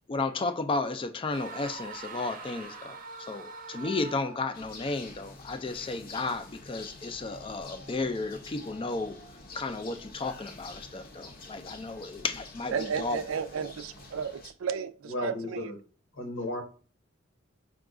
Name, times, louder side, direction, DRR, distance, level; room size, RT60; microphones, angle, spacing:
voice 1, 0.1-9.2 9.5-13.2, left 3 dB, 25° left, 0.4 m, -33 dB
sound 1, 1.3-4.6, right 4 dB, 45° right, 0.6 m, -43 dB
sound 2, 4.5-14.5, left 2 dB, 45° left, 0.7 m, -47 dB
voice 2, 12.7-15.7, right 6 dB, 85° right, 0.4 m, -33 dB
voice 3, 15.1-15.8 16.1-16.6, left 1 dB, 70° left, 1.2 m, -34 dB
4.7 x 2.3 x 3.6 m
head